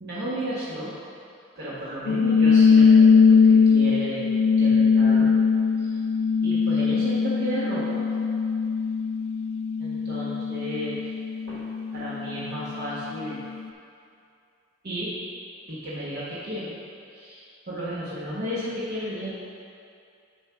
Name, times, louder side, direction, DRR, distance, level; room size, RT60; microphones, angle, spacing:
voice 1, 0.0-1.0 1.6-4.3 4.6-5.3 5.8-6.0 6.4-8.1 9.8-11.0 11.5-11.6 11.9-13.4 14.8-15.1 15.7-16.7 17.1-19.3, equal, 50° right, -10 dB, 1.2 m, -33 dB
sound 1, 2.1-12.9, left 5 dB, 85° left, 0.4 m, -20 dB
10.5 x 4.4 x 3.6 m, 2.5 s
head